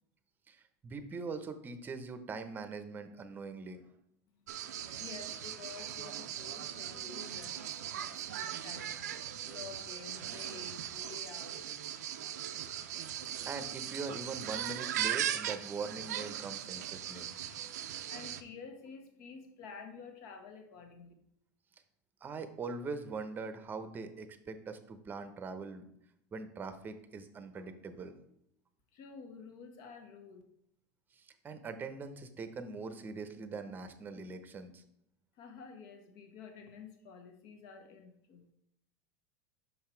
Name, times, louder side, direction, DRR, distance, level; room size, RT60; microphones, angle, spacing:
voice 1, 0.5-3.8 13.0-13.2 13.5-17.3 22.2-25.8 26.3-28.2 31.1-34.8, right 4 dB, 20° right, 10 dB, 0.8 m, -42 dB
sound 1, 4.5-18.4, right 10 dB, 85° right, 0.5 m, -39 dB
voice 2, 4.9-9.1 9.4-11.6 18.1-21.1 28.9-30.4 35.4-38.4, left 5 dB, 60° left, 5 dB, 1.4 m, -50 dB
5.7 x 5.6 x 4.5 m, 0.75 s
supercardioid pair, 120°, 9 cm